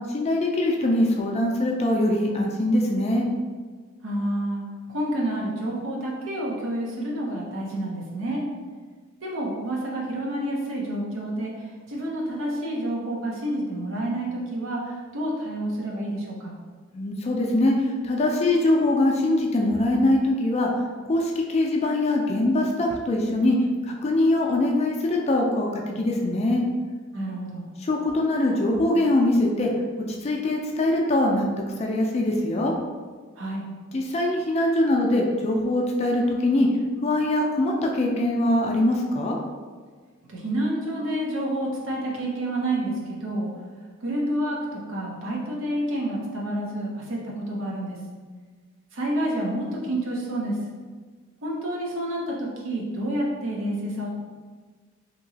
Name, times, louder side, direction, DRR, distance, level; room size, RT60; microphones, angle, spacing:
voice 1, 0.1-3.3 16.9-20.7 21.1-23.6 23.9-26.6 27.9-29.7 30.2-31.4 31.8-32.7 33.9-36.7 37.0-39.4, left 1 dB, 30° left, 0 dB, 0.4 m, -22 dB
voice 2, 4.0-8.4 9.2-16.5 27.1-27.6 33.4-33.6 40.3-43.5 44.0-48.0 48.9-50.6 51.4-54.1, right 1 dB, 80° right, -3 dB, 0.7 m, -29 dB
2.9 x 2.8 x 2.7 m, 1.5 s
head